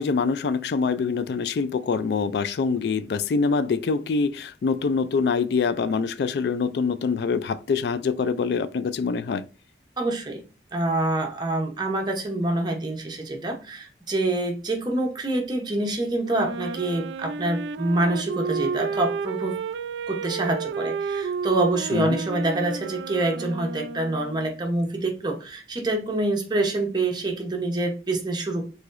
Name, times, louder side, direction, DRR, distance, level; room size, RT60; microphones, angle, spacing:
voice 1, 0.0-9.5 21.9-22.2, left 5 dB, 65° left, 0.3 m, -25 dB
voice 2, 10.0-10.4 10.7-19.6 20.1-28.7, right 2 dB, 25° right, 0.8 m, -26 dB
Wind instrument woodwind instrument, 16.2-24.6, right 5 dB, 80° right, 0.3 m, -31 dB
4.7 x 3.8 x 2.5 m
head